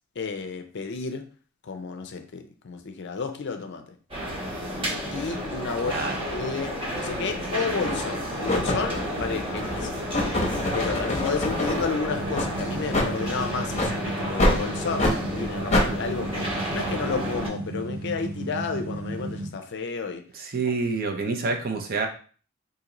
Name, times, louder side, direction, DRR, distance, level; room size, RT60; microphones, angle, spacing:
voice 1, 0.2-1.3 1.6-3.9 5.1-6.0 6.3-9.9 10.7-16.5 16.7-20.2, left 4 dB, 55° left, 6 dB, 0.5 m, -31 dB
sound 1, 4.1-17.5, equal, 25° right, 1.0 m, -32 dB
voice 2, 5.8-6.2 20.3-22.1, right 4 dB, 45° right, 4 dB, 0.6 m, -27 dB
sound 2, 7.0-7.1 7.8-8.1 8.5-11.9 12.3-12.5 12.9-13.1 13.7-13.9 14.4-14.6 15.0-15.2 15.7-15.9, left 1 dB, 30° left, 0.8 m, -25 dB
sound 3, 12.1-19.5, right 2 dB, 75° right, 1.0 m, -34 dB
3.8 x 2.7 x 2.9 m, 0.41 s
head